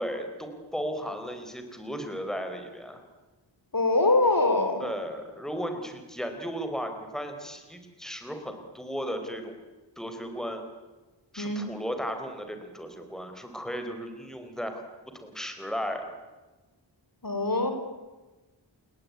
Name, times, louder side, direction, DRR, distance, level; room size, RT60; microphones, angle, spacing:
voice 1, 0.0-3.0 4.8-9.6 10.0-10.6 11.3-14.8 15.1-16.1, equal, ahead, 6 dB, 4.2 m, -35 dB
voice 2, 3.7-4.8 11.4-11.6 17.2-17.7, left 2 dB, 45° left, 6 dB, 4.6 m, -23 dB
30.0 x 20.0 x 9.5 m, 1.2 s
wide cardioid pair, 70°, 45 cm